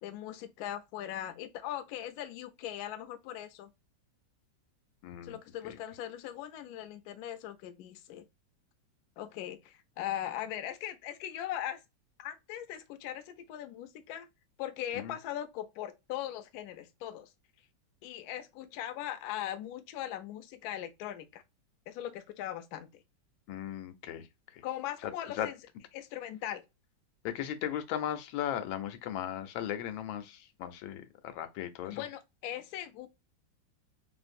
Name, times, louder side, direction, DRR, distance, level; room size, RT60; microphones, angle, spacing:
voice 1, 0.0-3.7 5.2-8.3 9.2-11.8 12.2-14.3 14.6-17.3 18.0-21.4 21.9-23.0 24.6-25.6 25.9-26.6 31.8-33.1, left 11 dB, 75° left, 0.9 m, -40 dB
voice 2, 5.0-5.4 5.6-5.7 15.0-15.1 23.5-24.3 25.4-25.5 27.2-31.0 31.3-32.0, left 10 dB, 90° left, 1.4 m, -36 dB
3.3 x 2.5 x 2.5 m
omnidirectional pair, 2.1 m